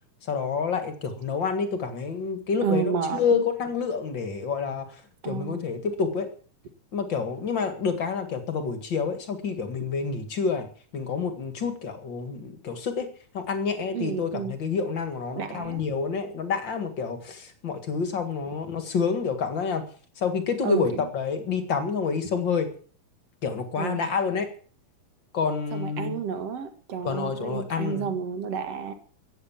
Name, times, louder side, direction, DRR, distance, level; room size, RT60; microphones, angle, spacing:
voice 1, 0.2-4.9 5.2-6.3 6.9-10.7 10.9-13.1 13.3-19.8 20.2-22.7 23.4-24.5 25.3-26.2 27.0-28.1, left 5 dB, 40° left, 8 dB, 1.8 m, -28 dB
voice 2, 2.6-3.4 5.2-5.6 13.9-14.6 15.3-15.9 20.6-21.1 23.8-24.1 25.7-28.9, right 6 dB, 50° right, 8 dB, 2.4 m, -31 dB
14.5 x 9.0 x 7.3 m, 0.43 s
omnidirectional pair, 4.1 m